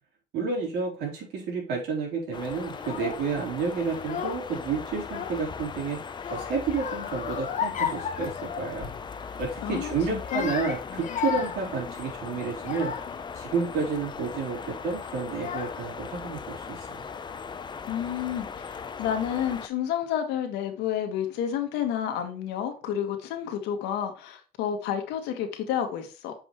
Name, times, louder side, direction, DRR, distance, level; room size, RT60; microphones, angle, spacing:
voice 1, 0.3-6.0 6.3-8.9 9.4-12.9 13.4-17.0, right 5 dB, 80° right, 4.0 m, -30 dB
sound 1, 2.3-19.7, left 5 dB, 25° left, 0.6 m, -39 dB
Child speech kid speaking / Crying sobbing, 2.7-3.3 3.9-4.6 4.9-5.7 6.2-9.0 9.4-9.6 10.1-13.3 13.9-14.3 15.0-15.1 15.4-16.1, left 8 dB, 45° left, 1.1 m, -34 dB
voice 2, 9.6-10.5 17.8-26.3, left 9 dB, 90° left, 1.7 m, -30 dB
7.9 x 5.3 x 3.1 m
cardioid pair, 110°, 17 cm